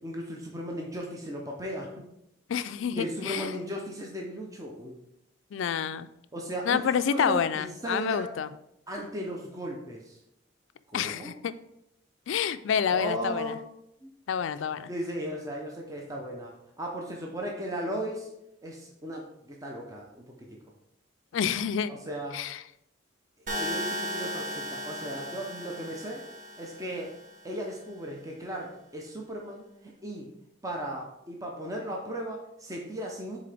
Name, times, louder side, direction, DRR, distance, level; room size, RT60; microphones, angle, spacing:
voice 1, 0.0-2.0 2.9-5.0 6.3-8.3 8.9-10.2 10.9-11.3 12.9-13.6 14.0-14.1 14.9-16.5 16.8-18.3 18.6-20.5 21.9-22.4 23.5-26.2 26.6-27.1 27.4-30.3 30.6-33.4, equal, 15° right, -1 dB, 0.6 m, -36 dB
voice 2, 2.5-3.5 5.5-6.1 6.7-8.5 10.9-11.5 12.3-13.5 14.3-14.9 21.3-21.9 22.3-22.6, left 7 dB, 70° left, 13 dB, 0.3 m, -28 dB
sound 1, 23.5-27.5, equal, 40° right, 1.0 m, -36 dB
7.6 x 3.8 x 3.4 m, 0.81 s
head